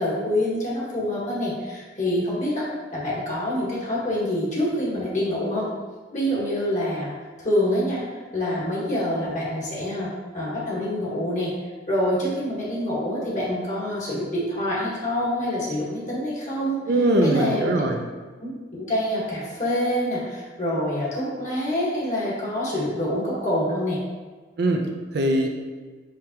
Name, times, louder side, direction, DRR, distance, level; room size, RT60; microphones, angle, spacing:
voice 1, 0.0-2.6 2.9-5.7 6.1-7.1 7.4-8.0 8.3-10.1 10.3-11.5 11.9-16.8 17.2-17.8 18.4-24.0, left 1 dB, 45° left, -6 dB, 1.5 m, -26 dB
voice 2, 16.9-18.1 24.6-25.5, right 1 dB, 65° right, 3 dB, 0.5 m, -21 dB
4.9 x 3.4 x 2.9 m, 1.4 s
head